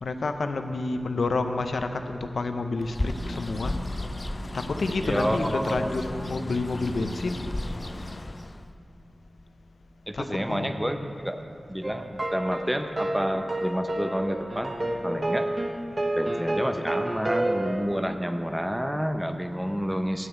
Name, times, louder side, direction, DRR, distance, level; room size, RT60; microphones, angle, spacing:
voice 1, 0.0-3.8 4.5-7.5 10.1-11.1, left 3 dB, 85° left, 7 dB, 0.6 m, -29 dB
Bird, 2.8-8.7, left 1 dB, 35° left, 0.4 m, -34 dB
voice 2, 5.0-5.9 10.1-11.4 11.7-14.7 15.0-15.5 16.2-20.3, equal, 5° right, 7 dB, 0.6 m, -29 dB
sound 1, 11.8-18.0, right 1 dB, 40° right, 0.9 m, -29 dB
8.4 x 7.3 x 7.9 m, 2.4 s
wide cardioid pair, 60°, 0 cm